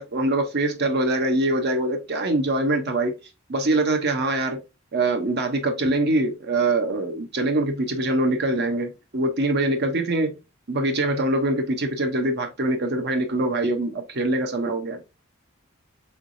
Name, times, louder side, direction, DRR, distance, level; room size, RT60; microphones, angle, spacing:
voice 1, 0.0-3.2 3.5-4.6 4.9-10.3 10.7-15.0, right 2 dB, 55° right, 0.8 m, -23 dB
3.9 x 3.3 x 2.6 m
head